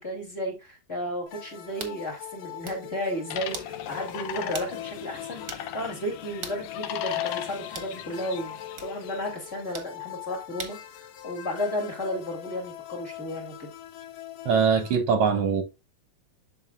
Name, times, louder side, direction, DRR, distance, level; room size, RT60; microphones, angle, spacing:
voice 1, 0.0-13.7, equal, 20° left, 2.4 m, -33 dB
sound 1, 1.3-15.0, left 13 dB, 70° left, 2.1 m, -41 dB
sound 2, 1.8-2.0 2.5-2.9 3.5-3.7 4.5-4.8 5.0-5.1 5.5-5.7 6.4-6.6 7.7-8.0 8.8-8.9 9.7-9.9 10.6-10.8, right 5 dB, 50° right, 1.1 m, -39 dB
sound 3, 3.3-9.4, left 10 dB, 90° left, 2.3 m, -39 dB
voice 2, 14.4-15.6, right 6 dB, 70° right, 1.5 m, -22 dB
11.5 x 4.6 x 2.4 m
omnidirectional pair, 3.6 m